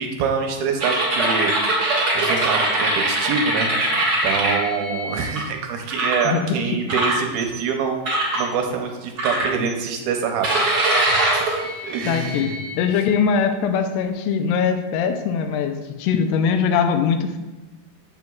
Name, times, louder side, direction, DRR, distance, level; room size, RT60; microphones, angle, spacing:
voice 1, 0.0-1.5 2.2-3.7 4.2-8.0 8.4-10.9 11.8-12.6, right 6 dB, 80° right, 3 dB, 2.4 m, -25 dB
sound 1, 0.8-5.4 5.9-6.3 6.9-7.6 8.1-8.4 9.2-9.9 10.4-12.7, right 1 dB, 60° right, 1.0 m, -22 dB
voice 2, 6.3-6.6 12.1-17.4, left 6 dB, 85° left, 7 dB, 2.7 m, -21 dB
7.9 x 7.3 x 2.3 m, 1.1 s
omnidirectional pair, 4.7 m